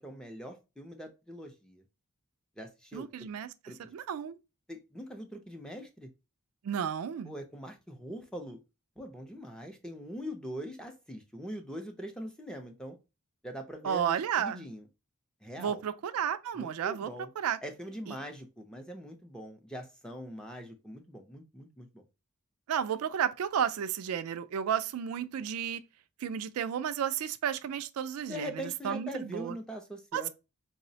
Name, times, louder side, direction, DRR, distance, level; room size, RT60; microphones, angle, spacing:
voice 1, 0.0-1.8 2.6-3.1 3.7-3.8 4.7-6.1 7.2-8.6 9.0-13.0 13.4-14.8 15.4-15.8 16.5-17.3 17.6-22.0 28.3-30.3, equal, 5° left, 0.4 m, -42 dB
voice 2, 2.9-3.5 3.9-4.4 6.6-7.3 13.8-14.7 15.6-17.1 17.4-17.6 22.7-25.8 26.2-28.5 28.8-29.5 30.1-30.3, right 8 dB, 80° right, 0.3 m, -32 dB
4.6 x 2.0 x 2.6 m
head